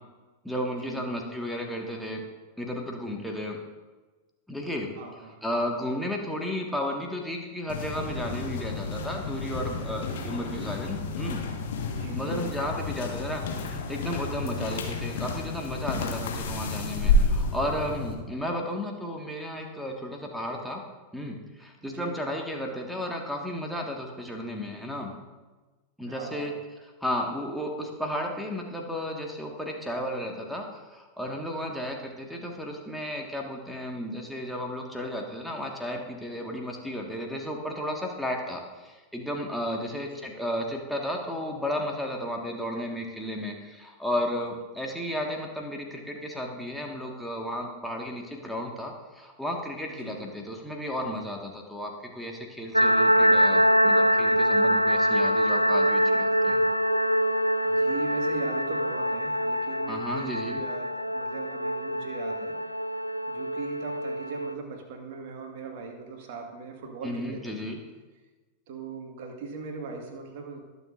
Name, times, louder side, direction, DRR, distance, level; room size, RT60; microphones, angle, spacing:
voice 1, 0.4-2.2 2.6-3.6 4.5-4.9 5.4-11.5 12.1-20.8 21.1-25.1 26.0-26.5 27.0-56.6 59.9-60.6 67.0-67.8, equal, ahead, 0 dB, 1.7 m, -33 dB
voice 2, 5.0-5.4 11.9-12.5 21.8-22.2 26.1-26.5 39.7-40.3 50.0-50.3 57.6-62.6 63.3-67.6 68.7-70.6, right 4 dB, 50° right, 3 dB, 1.8 m, -39 dB
sound 1, 7.7-18.1, left 2 dB, 55° left, 1.5 m, -30 dB
sound 2, 52.7-64.5, equal, 90° right, 0.3 m, -24 dB
21.0 x 7.1 x 2.6 m, 1.2 s
figure-of-eight pair, 90°, 0 cm